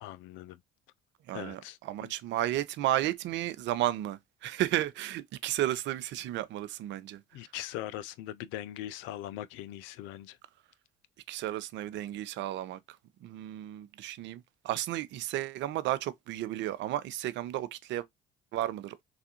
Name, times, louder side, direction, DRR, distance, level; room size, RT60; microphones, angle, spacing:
voice 1, 0.0-0.6 1.3-2.1 7.3-10.4, left 13 dB, 70° left, 0.4 m, -41 dB
voice 2, 1.3-7.2 11.3-12.8 13.2-18.0 18.5-18.9, right 14 dB, 60° right, 0.5 m, -33 dB
3.3 x 2.4 x 2.7 m
hypercardioid pair, 65°, 21 cm